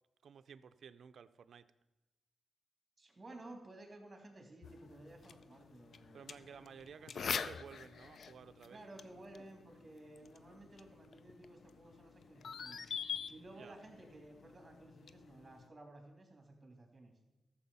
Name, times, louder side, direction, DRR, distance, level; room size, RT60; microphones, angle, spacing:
voice 1, 0.2-1.7 6.1-8.8 13.5-13.8, right 7 dB, 75° right, 0.4 m, -54 dB
voice 2, 3.0-6.4 8.7-12.9 13.3-17.1, right 2 dB, 25° right, 2.9 m, -55 dB
sound 1, 4.6-15.7, left 6 dB, 70° left, 0.5 m, -46 dB
13.0 x 7.2 x 5.5 m
cardioid pair, 95°, 0 cm